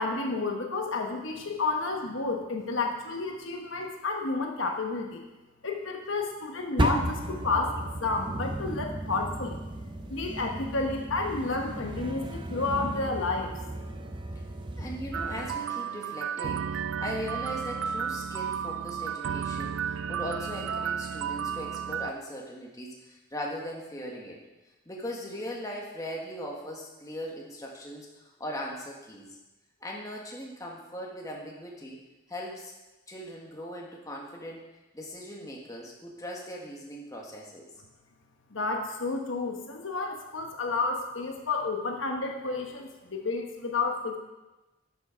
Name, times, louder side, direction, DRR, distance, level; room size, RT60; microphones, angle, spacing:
voice 1, 0.0-5.2 5.6-9.6 10.1-13.5 38.5-44.2, left 3 dB, 65° left, 2 dB, 1.1 m, -31 dB
sound 1, 6.8-15.6, right 1 dB, 20° right, 0.6 m, -34 dB
voice 2, 14.8-24.4 24.8-29.3 29.8-32.0 32.3-32.7 33.1-34.6 34.9-37.7, equal, 15° left, -2 dB, 1.6 m, -39 dB
sound 2, 15.1-22.1, right 7 dB, 70° right, 0.4 m, -33 dB
12.5 x 6.6 x 5.1 m, 1.1 s
head